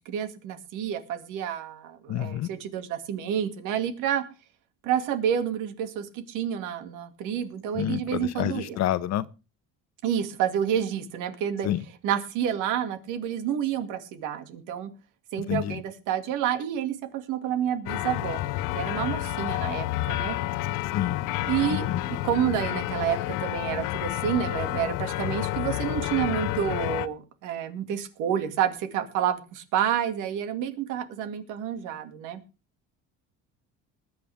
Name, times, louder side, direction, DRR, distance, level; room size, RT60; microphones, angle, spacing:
voice 1, 0.1-4.2 4.8-8.8 10.0-11.7 12.0-14.9 15.3-18.4 18.7-20.4 21.5-32.4, right 9 dB, 80° right, 2.4 m, -29 dB
voice 2, 2.1-2.5 7.7-9.3 11.6-11.8 15.5-15.8 20.9-21.2 21.7-22.0, left 12 dB, 60° left, 1.0 m, -28 dB
sound 1, 17.9-27.1, left 16 dB, 85° left, 0.8 m, -30 dB
20.5 x 9.4 x 3.6 m
cardioid pair, 125°, 31 cm